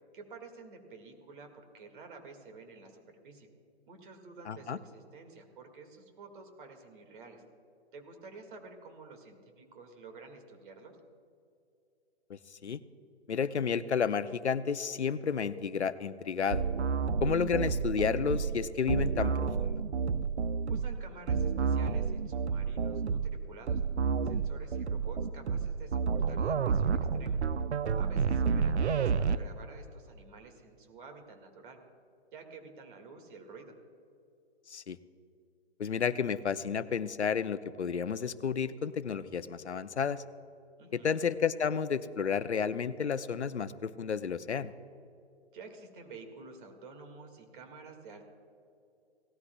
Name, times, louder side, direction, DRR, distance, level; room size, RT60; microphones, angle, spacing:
voice 1, 0.1-3.5 3.9-7.4 7.9-11.0 20.7-23.8 24.2-27.4 27.9-31.8 32.3-33.7 40.8-41.3 45.5-48.3, right 4 dB, 50° right, 4 dB, 2.0 m, -50 dB
voice 2, 4.5-4.8 12.3-12.8 13.3-16.6 17.2-19.8 28.5-28.6 34.7-35.0 35.8-40.2 40.9-44.7, left 6 dB, 85° left, 14 dB, 0.6 m, -31 dB
sound 1, 16.5-29.4, right 6 dB, 80° right, 0.6 m, -30 dB
17.5 x 13.0 x 2.3 m, 2.6 s
figure-of-eight pair, 130°, 33 cm